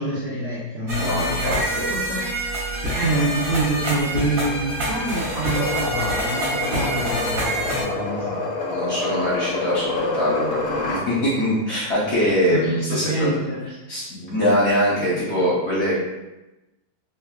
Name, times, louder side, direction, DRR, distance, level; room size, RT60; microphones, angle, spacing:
voice 1, 0.0-8.7 12.5-13.6, right 2 dB, 80° right, -7 dB, 0.5 m, -27 dB
sound 1, 0.9-7.8, right 1 dB, 60° right, 1.1 m, -26 dB
voice 2, 1.0-1.9 8.7-13.4 13.9-15.9, equal, 55° left, -7 dB, 0.8 m, -23 dB
sound 2, 5.3-11.1, left 3 dB, 70° left, 1.1 m, -27 dB
3.5 x 2.3 x 2.3 m, 1.0 s
omnidirectional pair, 1.8 m